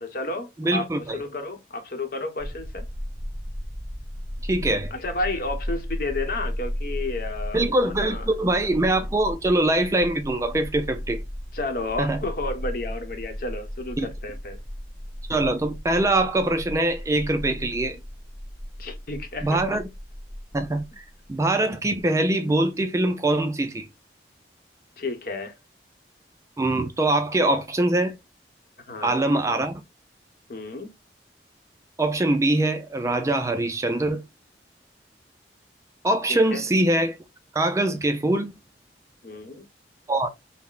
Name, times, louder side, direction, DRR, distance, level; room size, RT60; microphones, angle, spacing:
voice 1, 0.0-2.8 4.9-8.3 11.5-14.6 18.8-19.8 25.0-25.5 28.9-29.2 30.5-30.9 36.3-36.6 39.2-39.7, left 2 dB, 55° left, 0.9 m, -32 dB
voice 2, 0.6-1.2 4.4-4.9 7.5-11.2 12.0-12.2 14.0-14.1 15.3-18.0 19.4-19.8 20.5-23.9 26.6-28.1 29.0-29.8 32.0-34.2 36.0-37.2 37.5-38.5 40.1-40.3, right 1 dB, 15° right, 0.4 m, -23 dB
sound 1, 2.4-21.3, equal, 20° left, 0.8 m, -35 dB
5.6 x 2.1 x 2.3 m
head